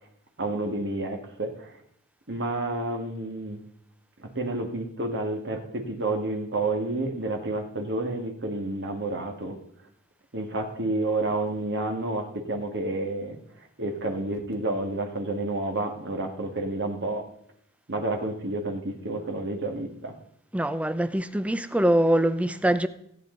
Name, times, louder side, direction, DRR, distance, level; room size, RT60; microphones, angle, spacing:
voice 1, 0.4-1.8 2.3-3.6 4.2-9.6 10.3-17.3 17.9-20.1, right 2 dB, 55° right, 2.0 m, -30 dB
voice 2, 20.5-22.9, right 1 dB, 5° right, 0.6 m, -23 dB
17.0 x 9.3 x 4.0 m
head